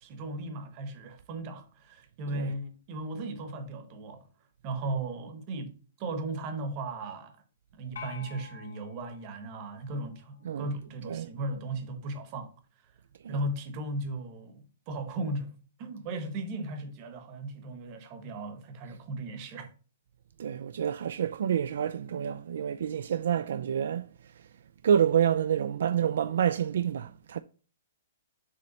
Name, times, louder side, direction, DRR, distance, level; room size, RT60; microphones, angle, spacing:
voice 1, 0.0-4.3 4.6-7.4 7.7-12.5 13.3-19.7, right 2 dB, 25° right, 1.0 m, -36 dB
sound 1, 8.0-10.4, left 5 dB, 80° left, 1.0 m, -48 dB
voice 2, 20.4-24.5 24.8-27.4, right 9 dB, 60° right, 0.3 m, -28 dB
6.7 x 3.2 x 5.3 m
hypercardioid pair, 170°, 0 cm